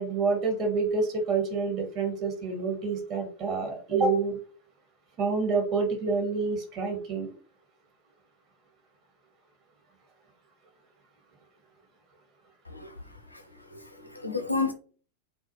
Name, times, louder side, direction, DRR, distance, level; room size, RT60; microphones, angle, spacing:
voice 1, 0.0-4.4 5.2-7.3, right 4 dB, 35° right, 0.9 m, -28 dB
voice 2, 12.6-14.7, left 4 dB, 85° left, 0.5 m, -33 dB
2.3 x 2.2 x 2.7 m
figure-of-eight pair, 90°, 0 cm